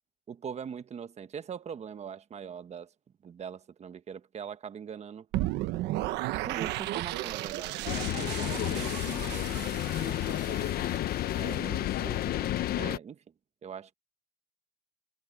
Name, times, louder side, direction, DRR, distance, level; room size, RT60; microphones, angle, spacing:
voice 1, 0.3-2.9 3.2-5.3 6.3-9.5 10.0-10.9 11.3-13.2 13.6-13.9, right 7 dB, 40° right, 1.4 m, -42 dB
sound 1, 5.3-11.4, right 16 dB, 90° right, 1.2 m, -35 dB
sound 2, 7.9-13.0, left 13 dB, 65° left, 0.8 m, -31 dB
cardioid pair, 110°, 17 cm